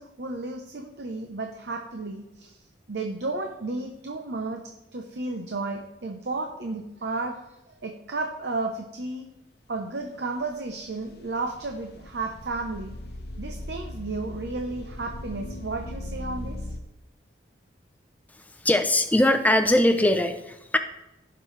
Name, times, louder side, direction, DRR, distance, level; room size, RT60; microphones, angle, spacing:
voice 1, 0.0-2.6 2.9-4.6 4.9-9.2 9.7-13.0 13.4-16.7, right 3 dB, 65° right, 3 dB, 0.8 m, -33 dB
sound 1, 10.0-16.8, left 1 dB, 60° left, 0.8 m, -39 dB
voice 2, 18.6-20.8, left 1 dB, 10° left, 8 dB, 0.5 m, -21 dB
16.0 x 6.0 x 3.3 m, 0.93 s
head